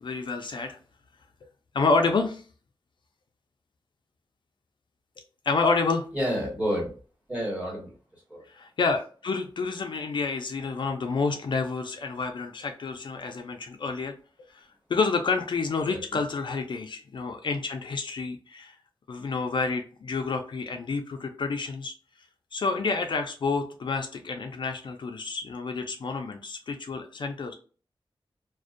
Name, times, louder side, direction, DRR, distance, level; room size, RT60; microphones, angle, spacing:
voice 1, 0.0-0.8 1.7-2.4 5.5-6.1 8.5-14.1 14.5-18.8 19.1-21.9 22.5-27.5, left 4 dB, 60° left, 5 dB, 0.3 m, -29 dB
voice 2, 6.1-6.9 7.3-8.5 15.9-16.2, equal, 15° right, -4 dB, 1.3 m, -30 dB
2.5 x 2.1 x 2.4 m, 0.39 s
wide cardioid pair, 125°, 9 cm